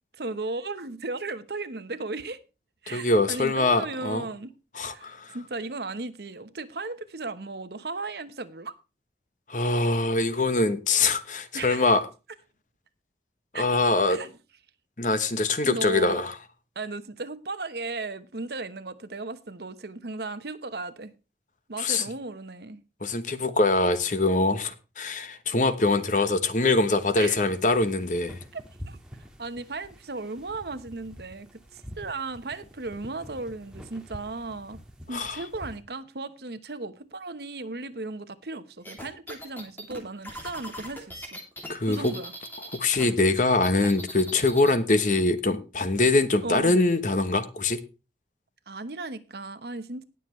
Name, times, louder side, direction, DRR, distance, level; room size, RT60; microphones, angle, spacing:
voice 1, 0.2-2.4 2.8-4.5 4.9-8.7 11.5-11.9 13.5-13.6 14.1-14.3 15.7-16.2 16.7-21.1 21.7-22.8 26.2-26.3 27.2-27.4 28.5-28.6 28.9-29.0 29.4-34.8 35.1-41.4 41.9-42.3 46.4-46.7 48.7-50.0, right 3 dB, 70° right, 1.0 m, -36 dB
voice 2, 2.9-4.2 4.7-5.4 9.5-12.1 13.5-14.2 15.0-16.3 21.8-22.0 23.0-28.4 35.1-35.4 41.7-42.1 42.7-47.8, left 2 dB, 45° left, 1.0 m, -23 dB
sound 1, 26.9-35.8, equal, 5° right, 1.8 m, -47 dB
sound 2, 38.8-43.1 43.3-44.8, equal, 10° left, 2.7 m, -40 dB
19.0 x 7.0 x 3.2 m
head